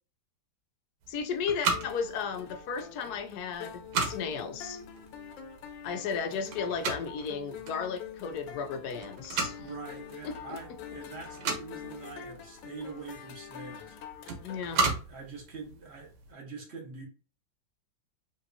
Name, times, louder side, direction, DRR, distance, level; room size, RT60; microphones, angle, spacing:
sound 1, 1.0-16.3, right 4 dB, 80° right, 1.6 m, -37 dB
voice 1, 1.1-4.8 5.8-9.7 10.2-10.6 14.4-14.8, left 6 dB, 70° left, 1.0 m, -34 dB
sound 2, 1.7-14.9, left 8 dB, 90° left, 1.4 m, -45 dB
voice 2, 9.6-14.0 14.7-17.0, right 4 dB, 40° right, 1.3 m, -44 dB
5.2 x 2.8 x 2.7 m
omnidirectional pair, 2.0 m